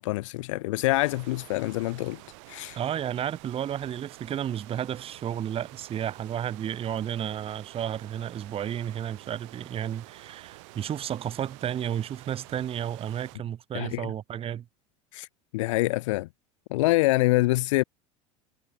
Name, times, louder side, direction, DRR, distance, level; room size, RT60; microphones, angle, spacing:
voice 1, 0.0-2.2 2.5-2.8 13.7-14.1 15.1-15.3 15.5-16.3 16.7-17.8, left 20 dB, 65° left, 0.7 m, -25 dB
sound 1, 0.9-13.4, right 30 dB, 60° right, 4.6 m, -49 dB
voice 2, 2.8-14.6, right 10 dB, 35° right, 1.4 m, -32 dB
hypercardioid pair, 80°, 17 cm